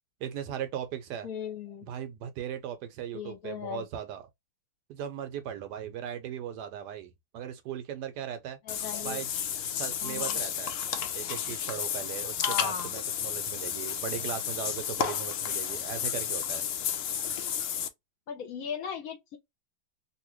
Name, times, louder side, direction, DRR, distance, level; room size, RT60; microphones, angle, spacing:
voice 1, 0.2-1.3 1.9-4.2 4.9-8.6 9.0-9.3 9.8-10.7 11.1-16.6, right 9 dB, 70° right, 1.1 m, -38 dB
voice 2, 1.2-1.9 3.1-3.9 8.6-9.2 10.0-10.4 12.4-12.9 18.3-19.4, left 7 dB, 60° left, 1.1 m, -37 dB
Water / Bathtub (filling or washing), 8.7-17.9, left 9 dB, 90° left, 0.6 m, -32 dB
2.9 x 2.7 x 3.0 m
omnidirectional pair, 2.0 m